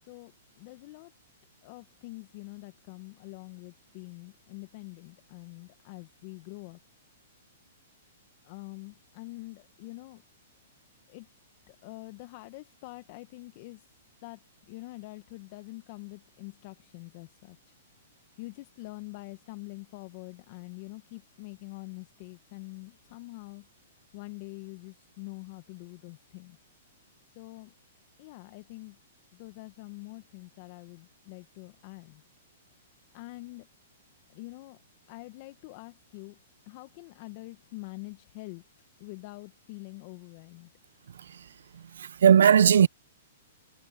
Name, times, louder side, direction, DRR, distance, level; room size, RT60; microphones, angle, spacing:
voice 1, 0.0-1.1 1.6-6.8 8.4-10.2 11.1-11.3 11.7-13.9 14.2-17.7 18.0-23.7 24.1-26.6 27.3-27.7 28.2-29.0 29.3-32.2 33.1-33.7 34.3-34.8 35.1-38.6 39.0-40.7, left 24 dB, 45° left, 1.3 m, -45 dB
voice 2, 41.1-41.5 41.7-42.9, right 8 dB, 75° right, 0.4 m, -20 dB
hypercardioid pair, 125°, 0 cm